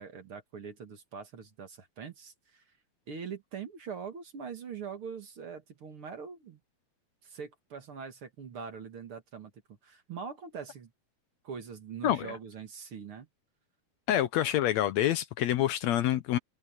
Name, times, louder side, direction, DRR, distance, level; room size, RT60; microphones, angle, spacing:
voice 1, 0.0-2.6 3.1-6.6 7.2-10.9 11.4-13.3, right 6 dB, 50° right, 2.4 m, -43 dB
voice 2, 12.0-12.4 14.1-16.4, left 12 dB, 70° left, 1.9 m, -27 dB
open air
omnidirectional pair, 3.5 m